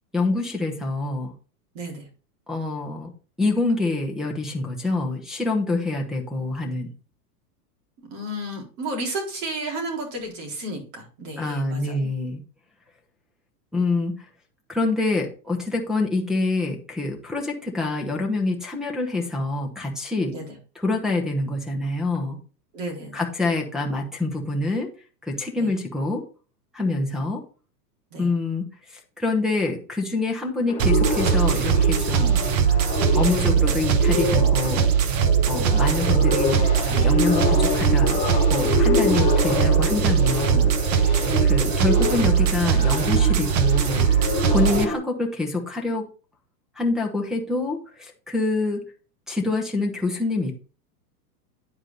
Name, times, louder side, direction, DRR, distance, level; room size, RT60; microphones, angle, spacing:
voice 1, 0.1-1.3 2.5-3.1 3.4-6.9 11.4-12.4 13.7-14.3 14.7-20.3 20.7-22.4 23.1-24.9 25.2-26.2 26.7-27.4 28.2-28.6 28.9-32.4 33.1-34.9 35.5-38.2 38.5-44.1 44.5-46.1 46.8-48.8 49.3-50.5, left 3 dB, ahead, -2 dB, 0.9 m, -26 dB
voice 2, 1.7-2.1 8.1-12.1 20.3-20.5 22.7-23.2 25.6-25.7 28.1-28.3 41.2-41.4, right 1 dB, 50° right, 1 dB, 3.9 m, -32 dB
sound 1, 30.7-45.0, left 4 dB, 15° left, 2.7 m, -27 dB
sound 2, 30.8-44.8, right 8 dB, 25° right, 0.4 m, -20 dB
9.4 x 4.9 x 3.9 m, 0.36 s
supercardioid pair, 145°, 49 cm